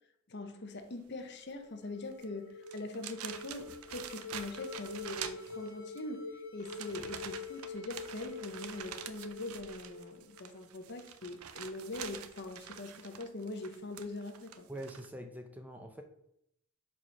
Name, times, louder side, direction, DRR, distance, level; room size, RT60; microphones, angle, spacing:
voice 1, 0.3-6.3 6.5-14.7, left 2 dB, 55° left, 0.8 m, -42 dB
sound 1, 1.5-10.7, left 3 dB, 80° left, 1.5 m, -46 dB
sound 2, 2.1-2.2 2.6-6.0 6.6-15.1, right 9 dB, 85° right, 0.5 m, -46 dB
voice 2, 14.7-16.0, right 1 dB, 10° right, 0.5 m, -44 dB
4.8 x 4.2 x 5.7 m
head